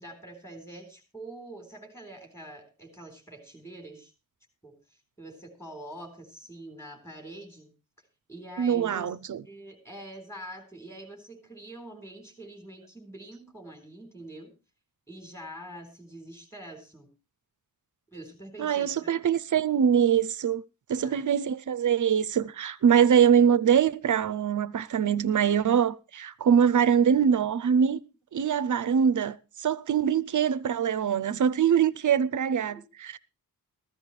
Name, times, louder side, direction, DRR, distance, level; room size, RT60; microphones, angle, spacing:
voice 1, 0.0-4.1 4.6-7.7 8.3-9.1 9.4-14.5 15.1-17.1 18.1-19.1 21.0-21.2 32.7-32.8, right 1 dB, 5° left, 3.9 m, -45 dB
voice 2, 8.6-9.4 18.6-20.6 20.9-28.0 28.3-33.2, right 8 dB, 55° right, 0.6 m, -23 dB
14.5 x 14.5 x 3.2 m
wide cardioid pair, 160°, 35 cm